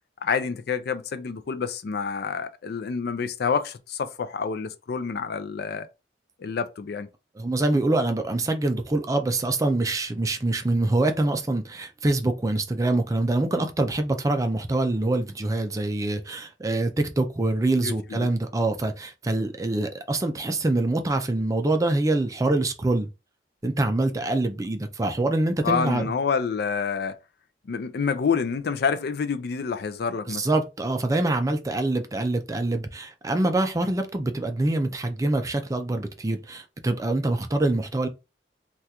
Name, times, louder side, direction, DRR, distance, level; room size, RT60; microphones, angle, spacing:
voice 1, 0.2-5.9 6.4-7.1 17.8-18.3 25.6-27.2 27.7-30.5, left 5 dB, 60° left, 0.4 m, -28 dB
voice 2, 7.4-23.1 23.6-26.1 30.3-38.1, right 2 dB, 20° right, 0.4 m, -25 dB
3.4 x 2.3 x 2.8 m
head